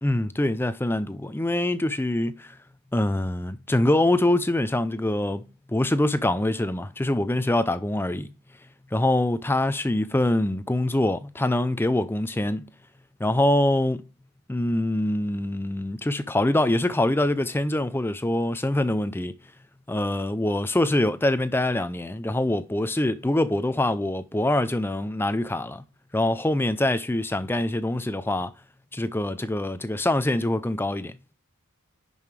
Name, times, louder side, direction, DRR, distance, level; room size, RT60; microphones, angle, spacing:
voice 1, 0.0-2.5 2.9-5.4 5.7-8.3 8.9-12.7 13.2-14.1 14.5-19.3 19.9-25.8 26.1-28.5 28.9-31.2, left 1 dB, 10° left, 0.4 m, -24 dB
10.5 x 5.5 x 3.3 m
head